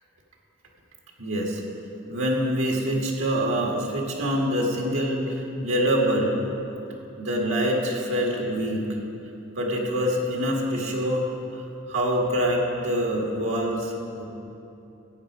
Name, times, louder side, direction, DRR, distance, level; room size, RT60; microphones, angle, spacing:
voice 1, 1.2-1.6 2.1-6.3 7.2-8.8 9.6-11.3 11.5-14.2, equal, 80° right, -1 dB, 2.0 m, -25 dB
14.5 x 8.7 x 4.9 m, 2.8 s
head